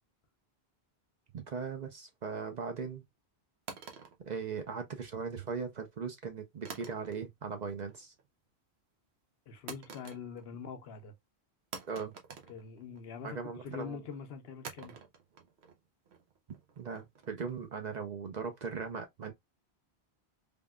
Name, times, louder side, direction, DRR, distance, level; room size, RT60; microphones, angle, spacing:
voice 1, 1.3-3.0 4.2-8.1 11.9-12.1 13.2-14.0 16.8-19.3, right 5 dB, 50° right, 0.7 m, -39 dB
sound 1, 3.7-5.1 6.7-7.5 7.8-8.3 9.7-10.6 10.9-11.0 11.7-13.2 14.6-17.7, right 5 dB, 80° right, 1.0 m, -49 dB
voice 2, 9.5-11.1 12.5-14.9, left 6 dB, 70° left, 0.9 m, -44 dB
3.5 x 2.4 x 2.2 m
omnidirectional pair, 1.1 m